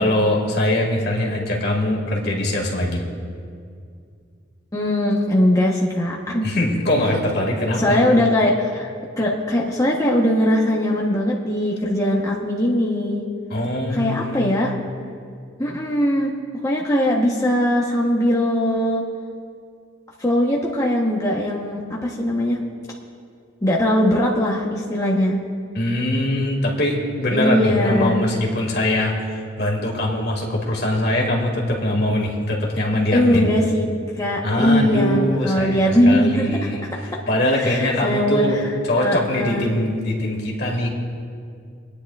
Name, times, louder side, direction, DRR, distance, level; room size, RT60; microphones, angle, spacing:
voice 1, 0.0-3.0 6.4-8.0 13.5-14.6 25.7-29.1 29.6-33.5 34.4-36.8 37.3-38.6 38.8-40.9, left 1 dB, 55° left, -1 dB, 2.0 m, -22 dB
voice 2, 4.7-6.5 7.8-8.9 9.2-13.2 13.9-14.8 15.6-16.3 16.6-19.0 20.2-22.6 23.6-25.4 27.3-28.3 33.1-33.8 34.1-36.7 37.5-39.7, left 1 dB, 15° left, -3 dB, 0.9 m, -20 dB
29.5 x 9.8 x 2.4 m, 2.3 s
head